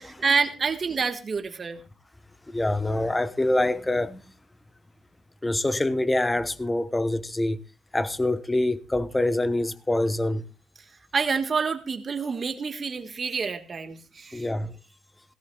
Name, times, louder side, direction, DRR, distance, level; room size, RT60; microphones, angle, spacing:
voice 1, 0.0-1.8 11.1-14.5, right 5 dB, 40° right, 1.5 m, -27 dB
voice 2, 2.5-4.2 5.4-7.6 7.9-10.5 14.3-14.7, left 1 dB, 15° left, 0.9 m, -25 dB
18.0 x 17.0 x 2.3 m
cardioid pair, 90°, 0 cm